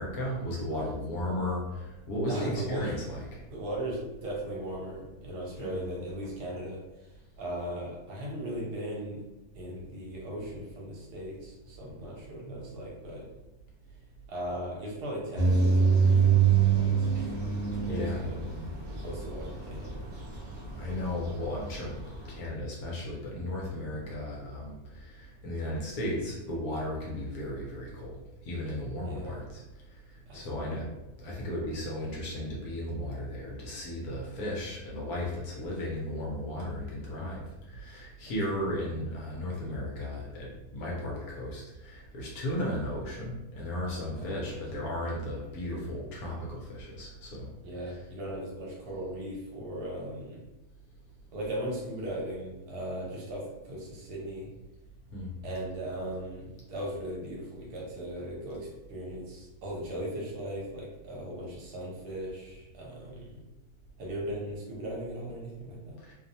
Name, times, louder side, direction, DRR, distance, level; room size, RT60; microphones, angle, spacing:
voice 1, 0.0-3.2 5.6-5.8 12.4-12.6 17.9-18.2 20.8-21.9 22.3-28.2 28.4-29.6 30.3-30.8 31.2-37.4 37.7-47.5 55.1-55.3 66.1-66.2, left 1 dB, 70° left, -3 dB, 1.0 m, -35 dB
voice 2, 2.3-3.0 3.5-9.2 9.5-13.3 14.3-17.4 17.7-18.5 18.9-20.1 29.0-29.4 30.3-30.9 38.2-38.3 44.2-44.5 47.6-50.4 51.3-54.5 55.4-63.4 64.0-66.0, right 1 dB, 75° right, -3 dB, 1.2 m, -38 dB
sound 1, 15.3-22.3, right 6 dB, 40° right, 0.6 m, -27 dB
2.8 x 2.0 x 2.6 m, 1.0 s
omnidirectional pair, 1.8 m